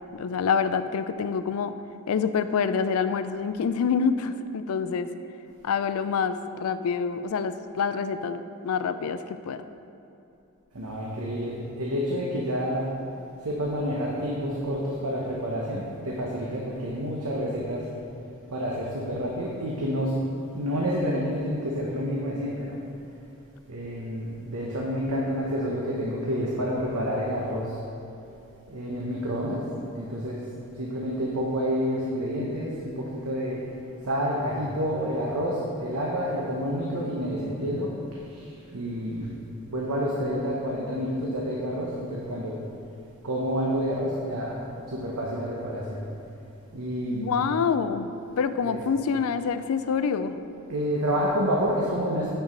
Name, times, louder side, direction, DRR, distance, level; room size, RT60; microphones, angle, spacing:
voice 1, 0.1-1.7 2.1-5.1 5.6-9.6 47.1-48.1 48.4-50.4, left 6 dB, 80° left, 11 dB, 0.4 m, -26 dB
voice 2, 10.7-12.9 13.4-17.8 18.5-20.1 20.5-22.8 23.7-27.8 28.7-29.6 29.9-30.4 30.8-33.6 34.0-37.9 38.3-39.3 39.7-42.5 43.2-44.6 44.9-46.0 46.7-47.5 48.6-48.8 50.7-52.3, equal, 90° right, -4 dB, 1.0 m, -29 dB
9.1 x 4.7 x 5.2 m, 2.8 s
head